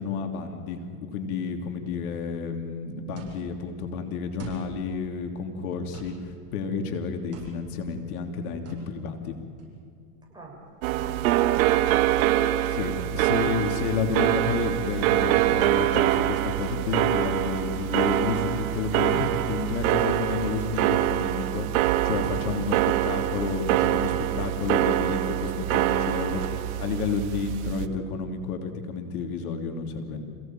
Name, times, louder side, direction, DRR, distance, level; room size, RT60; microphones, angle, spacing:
voice 1, 0.0-9.4 12.7-30.2, left 5 dB, 75° left, 5 dB, 3.0 m, -31 dB
sound 1, 2.6-19.9, right 5 dB, 35° right, 7.5 m, -49 dB
sound 2, 10.8-27.9, right 14 dB, 65° right, 1.6 m, -25 dB
voice 2, 10.9-12.2 16.8-17.0 22.0-22.7, right 2 dB, 10° right, -2 dB, 7.6 m, -44 dB
28.0 x 17.5 x 9.1 m, 2.4 s
supercardioid pair, 120°, 45 cm